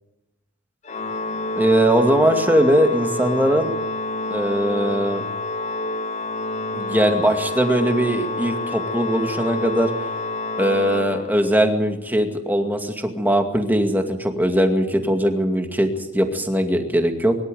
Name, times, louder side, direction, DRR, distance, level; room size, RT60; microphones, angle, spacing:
Organ, 0.8-11.7, left 2 dB, 30° left, 0.9 m, -28 dB
voice 1, 1.6-3.7 4.3-5.2 6.7-9.9 10.6-17.4, equal, 10° right, 5 dB, 2.2 m, -20 dB
24.0 x 13.0 x 9.4 m, 0.93 s
head